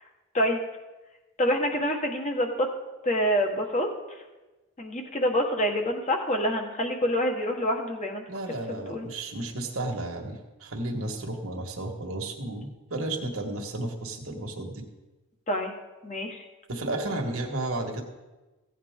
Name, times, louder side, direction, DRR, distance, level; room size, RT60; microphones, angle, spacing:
voice 1, 1.4-2.7 3.0-4.2 4.8-8.2 8.7-9.1 15.5-15.7 16.0-16.4, equal, 35° left, 2 dB, 1.5 m, -27 dB
voice 2, 8.3-14.8 16.7-18.0, right 2 dB, 65° right, 2 dB, 1.5 m, -33 dB
16.0 x 8.5 x 3.7 m, 1.1 s
head